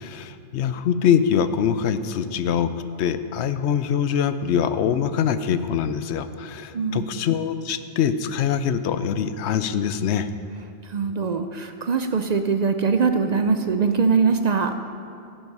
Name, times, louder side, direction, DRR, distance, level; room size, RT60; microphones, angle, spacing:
voice 1, 0.0-2.7 3.0-10.3, left 8 dB, 75° left, 12 dB, 0.9 m, -23 dB
voice 2, 6.7-7.2 10.9-14.7, right 5 dB, 50° right, 8 dB, 0.5 m, -22 dB
14.0 x 7.7 x 5.4 m, 2.7 s
omnidirectional pair, 1.2 m